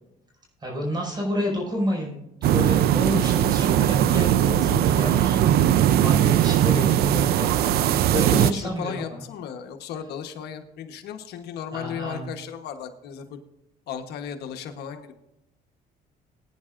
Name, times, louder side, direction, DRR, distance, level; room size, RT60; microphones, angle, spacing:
voice 1, 0.6-2.2 2.5-5.4 6.0-7.5 7.8-9.2 11.7-12.2, left 1 dB, 25° right, -1 dB, 5.2 m, -30 dB
sound 1, 2.4-8.5, right 11 dB, 65° right, 0.5 m, -20 dB
voice 2, 8.1-13.4 13.9-15.1, left 8 dB, 75° left, 6 dB, 1.2 m, -35 dB
20.0 x 9.8 x 2.5 m, 0.87 s
cardioid pair, 110°, 17 cm